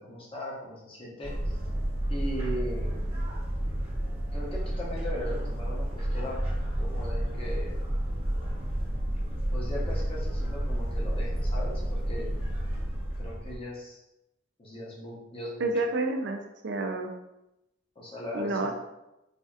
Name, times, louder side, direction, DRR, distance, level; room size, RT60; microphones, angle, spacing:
voice 1, 0.0-1.6 2.1-2.9 4.3-6.4 6.8-7.8 9.5-12.3 13.2-14.0 14.6-15.7 18.0-18.8, left 1 dB, 30° left, -4 dB, 0.9 m, -38 dB
sound 1, 1.2-13.6, right 1 dB, 35° right, 1.0 m, -30 dB
voice 2, 15.6-17.1 18.3-18.8, right 2 dB, 65° right, 5 dB, 0.5 m, -29 dB
4.1 x 2.7 x 2.4 m, 0.91 s
head